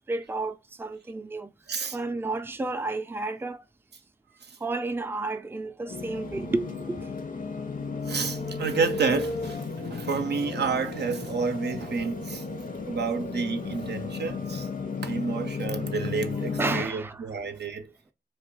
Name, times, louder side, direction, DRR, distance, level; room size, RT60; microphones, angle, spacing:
voice 1, 0.1-0.5 0.8-1.5 1.9-3.6 4.6-7.0 16.6-17.2, right 2 dB, 15° right, 0.4 m, -31 dB
voice 2, 1.7-2.0 4.5-4.6 8.1-12.4 12.9-14.7 15.0-17.9, right 5 dB, 80° right, 0.5 m, -30 dB
sound 1, 5.8-16.9, equal, 75° left, 0.8 m, -44 dB
sound 2, 5.9-16.9, left 4 dB, 50° left, 0.5 m, -34 dB
2.3 x 2.3 x 3.7 m
cardioid pair, 40°, 17 cm